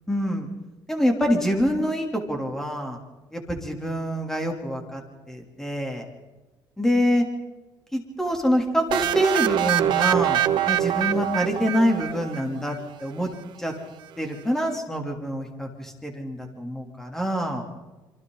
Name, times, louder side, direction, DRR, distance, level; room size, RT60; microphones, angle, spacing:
voice 1, 0.1-0.5 0.9-3.0 3.3-5.0 5.3-6.0 6.8-7.3 7.9-13.3 13.6-13.7 14.2-17.6, equal, 5° left, 2 dB, 3.4 m, -25 dB
sound 1, 8.9-12.7, right 11 dB, 70° right, 1.1 m, -24 dB
27.0 x 25.5 x 4.1 m, 1.1 s
cardioid pair, 150°, 8 cm